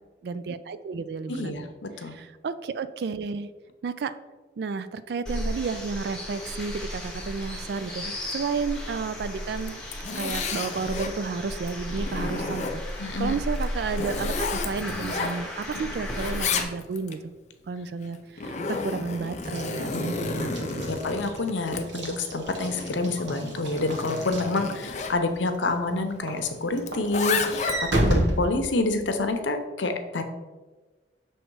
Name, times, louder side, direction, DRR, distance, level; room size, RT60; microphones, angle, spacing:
voice 1, 0.2-1.7 2.0-3.5 3.8-4.1 4.6-8.0 8.3-9.8 10.1-12.8 13.2-17.3 17.7-18.6 18.8-21.0, right 5 dB, 60° right, 13 dB, 0.3 m, -32 dB
voice 2, 1.3-2.1 8.0-8.1 13.0-13.4 15.7-15.9 19.9-20.0 20.4-20.6 20.9-30.2, left 2 dB, 85° left, 6 dB, 0.7 m, -28 dB
sound 1, 5.3-16.6, left 1 dB, 5° left, 1.0 m, -34 dB
Zipper (clothing), 9.6-11.2 11.7-13.0 13.5-15.8 16.0-17.2 18.0-25.2 26.8-28.0, left 4 dB, 40° left, 0.5 m, -32 dB
Walk footsteps / Slam, 19.4-25.2 25.7-25.9 26.3-29.3, right 1 dB, 80° right, 1.0 m, -30 dB
6.4 x 3.1 x 4.6 m, 1.2 s
head